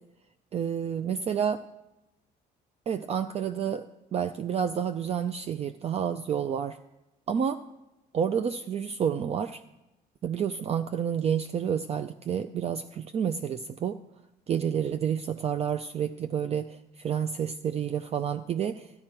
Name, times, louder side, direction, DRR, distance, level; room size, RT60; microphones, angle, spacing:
voice 1, 0.5-1.6 2.9-6.8 7.3-7.6 8.1-9.6 10.2-14.0 14.5-18.9, right 8 dB, 40° right, 10 dB, 0.4 m, -29 dB
13.5 x 11.0 x 4.5 m, 0.94 s
cardioid pair, 110°, 17 cm